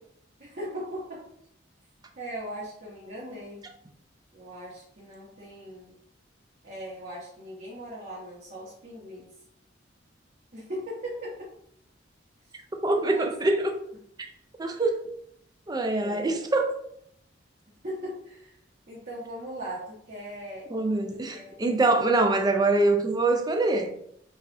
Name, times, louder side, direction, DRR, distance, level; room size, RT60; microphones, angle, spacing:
voice 1, 0.4-1.2 2.2-3.6 4.3-5.9 6.6-9.3 10.5-11.5 12.9-13.3 15.9-16.3 17.8-18.5 18.9-20.7 21.1-21.5, equal, 50° right, 1.0 m, -39 dB
voice 2, 12.8-13.7 14.6-15.1 15.7-16.7 20.7-23.9, right 2 dB, 20° right, 0.5 m, -24 dB
5.3 x 2.5 x 2.6 m
head